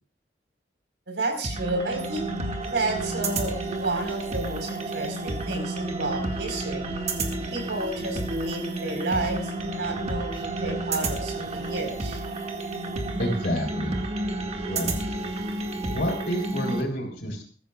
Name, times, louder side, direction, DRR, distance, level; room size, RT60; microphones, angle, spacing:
voice 1, 1.1-2.3 2.6-6.9 7.5-12.2, right 2 dB, 80° right, 3 dB, 4.4 m, -31 dB
sound 1, 1.4-16.8, right 2 dB, 40° right, 2.0 m, -31 dB
voice 2, 13.2-14.0 14.7-14.9 15.9-17.4, equal, 65° left, 2 dB, 4.4 m, -28 dB
21.5 x 15.0 x 2.4 m, 0.37 s
head